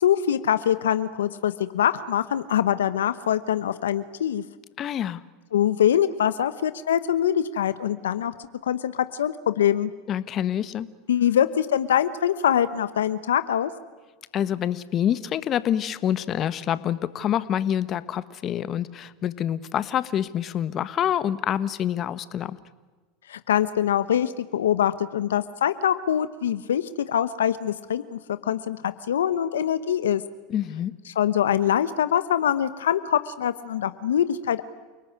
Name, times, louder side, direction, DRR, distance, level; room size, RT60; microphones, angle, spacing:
voice 1, 0.0-4.4 5.5-8.3 8.6-9.9 11.1-13.7 23.3-30.2 31.1-34.6, left 10 dB, 85° left, 13 dB, 1.0 m, -24 dB
voice 2, 4.8-5.2 10.1-10.9 14.3-22.6 30.5-30.9, left 10 dB, 40° left, 15 dB, 1.4 m, -26 dB
29.0 x 18.5 x 9.8 m, 1.3 s
hypercardioid pair, 90°, 0 cm